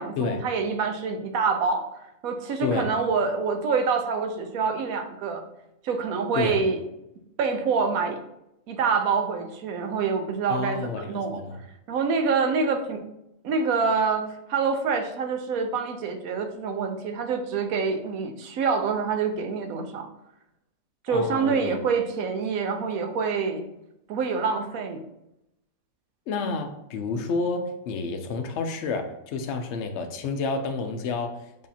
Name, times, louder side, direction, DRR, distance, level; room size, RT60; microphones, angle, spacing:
voice 1, 0.0-1.9 2.2-5.5 5.8-6.8 7.4-8.2 8.7-11.4 11.9-13.1 13.4-20.1 21.0-23.6 24.1-25.0, right 5 dB, 80° right, 6 dB, 1.1 m, -26 dB
voice 2, 10.5-11.6 21.1-21.8 26.3-31.7, left 4 dB, 60° left, 5 dB, 0.8 m, -30 dB
6.6 x 2.8 x 2.7 m, 0.85 s
omnidirectional pair, 1.5 m